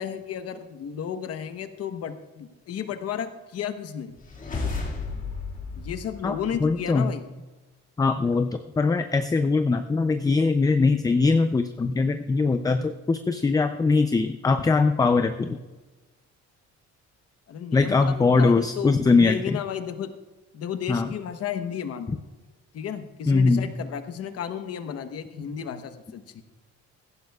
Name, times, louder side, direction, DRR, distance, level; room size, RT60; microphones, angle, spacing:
voice 1, 0.0-4.2 5.7-7.2 17.5-20.1 20.5-22.2 22.7-26.4, left 8 dB, 55° left, 9 dB, 1.0 m, -33 dB
sound 1, 4.2-7.0, left 4 dB, 30° left, 2.0 m, -33 dB
voice 2, 6.2-7.1 8.0-15.6 17.7-19.6 20.9-21.1 23.3-23.7, left 4 dB, 15° left, 8 dB, 0.4 m, -22 dB
17.0 x 15.0 x 2.4 m, 1.2 s
cardioid pair, 145°, 29 cm